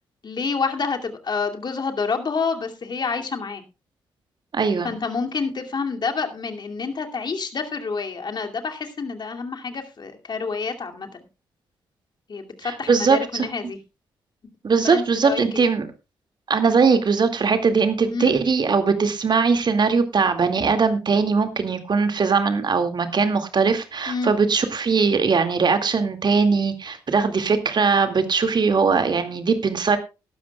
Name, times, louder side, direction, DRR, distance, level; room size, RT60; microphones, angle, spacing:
voice 1, 0.2-3.6 4.8-11.1 12.3-13.8 14.8-15.6 18.1-18.3 24.1-24.3, left 4 dB, 45° left, 4 dB, 2.5 m, -28 dB
voice 2, 4.5-4.9 12.6-13.5 14.6-15.9 16.5-30.0, right 5 dB, 45° right, 8 dB, 2.2 m, -20 dB
17.5 x 12.5 x 2.3 m, 0.29 s
hypercardioid pair, 40°, 10 cm